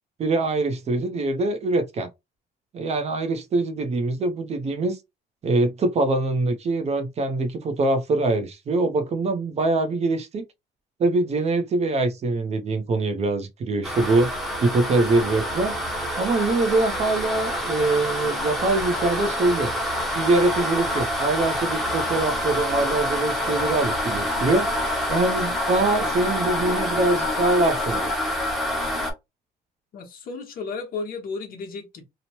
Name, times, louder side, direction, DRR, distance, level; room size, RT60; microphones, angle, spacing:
voice 1, 0.2-2.1 2.7-5.0 5.4-10.4 11.0-14.3 14.6-15.7 16.2-19.7 20.2-24.7 25.1-28.1, right 2 dB, 40° right, 0.6 m, -23 dB
sound 1, 13.8-29.1, left 1 dB, ahead, 0.8 m, -27 dB
voice 2, 29.9-32.0, left 4 dB, 60° left, 1.0 m, -33 dB
2.9 x 2.0 x 2.9 m
cardioid pair, 110°, 17 cm